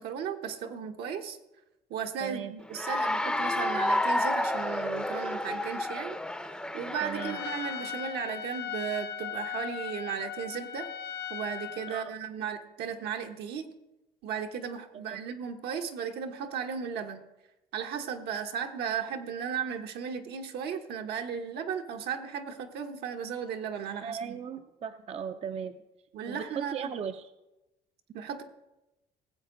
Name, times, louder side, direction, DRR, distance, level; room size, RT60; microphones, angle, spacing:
voice 1, 0.0-1.4 1.9-6.2 6.7-10.9 11.3-13.7 14.2-17.2 17.7-24.4 26.1-26.9 28.1-28.4, right 7 dB, 75° right, 5 dB, 1.2 m, -35 dB
voice 2, 2.2-2.6 7.0-7.4 11.9-12.1 14.9-15.2 24.0-25.8 26.3-27.3, right 7 dB, 35° right, 8 dB, 0.5 m, -37 dB
Cheering / Applause, 2.7-7.9, left 1 dB, 5° left, 0.6 m, -30 dB
Trumpet, 7.2-12.1, left 10 dB, 70° left, 0.9 m, -38 dB
18.0 x 7.8 x 3.8 m, 0.98 s
cardioid pair, 110°, 17 cm